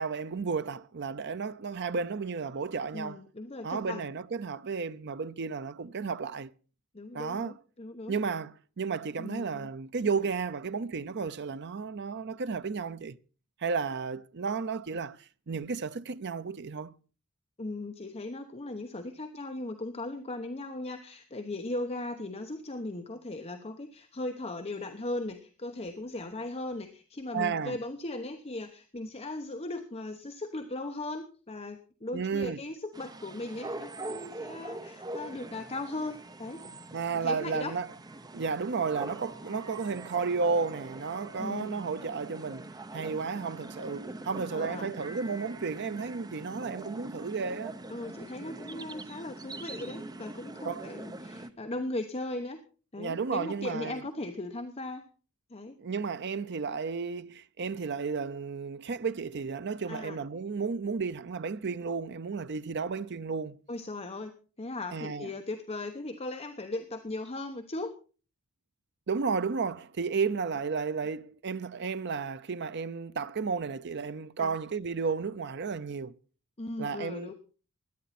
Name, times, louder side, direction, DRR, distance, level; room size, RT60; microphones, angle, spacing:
voice 1, 0.0-3.2 3.6-6.5 7.1-7.5 8.1-13.2 13.6-16.9 27.3-27.8 32.1-32.6 36.6-37.9 38.3-47.8 50.6-51.0 51.6-51.7 53.0-54.0 55.8-63.6 64.9-65.3 69.1-76.1 76.8-77.3, right 5 dB, 50° right, 0.6 m, -33 dB
voice 2, 2.9-4.1 6.9-8.1 9.2-9.7 17.6-36.6 37.2-37.7 41.4-41.8 44.5-44.9 47.9-52.6 52.9-55.0 55.5-55.8 59.9-60.2 63.7-64.3 64.6-67.9 74.4-74.6 76.6-77.3, left 2 dB, 30° left, 1.0 m, -38 dB
sound 1, 32.9-51.5, right 2 dB, 20° right, 0.7 m, -43 dB
17.0 x 11.5 x 4.2 m
head